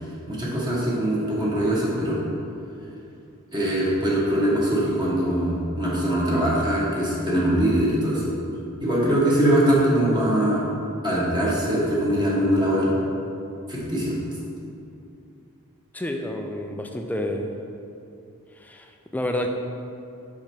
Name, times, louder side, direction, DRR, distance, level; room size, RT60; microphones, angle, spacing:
voice 1, 0.3-2.2 3.5-8.2 8.8-10.6 11.0-12.9 13.7-14.1, right 1 dB, 20° right, -6 dB, 1.1 m, -22 dB
voice 2, 15.9-17.5 18.5-19.5, left 1 dB, 10° left, 3 dB, 0.4 m, -29 dB
5.6 x 4.9 x 4.4 m, 2.6 s
head